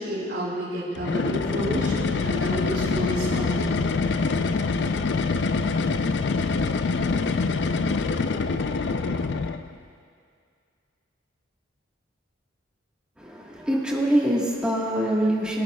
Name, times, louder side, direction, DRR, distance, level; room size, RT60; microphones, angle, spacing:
voice 1, 0.0-3.8, equal, 55° right, -12 dB, 2.9 m, -30 dB
sound 1, 1.0-9.7, left 4 dB, 60° left, 0.4 m, -25 dB
voice 2, 13.2-15.6, right 1 dB, 5° right, -4 dB, 1.4 m, -24 dB
22.5 x 9.4 x 2.3 m, 2.2 s
head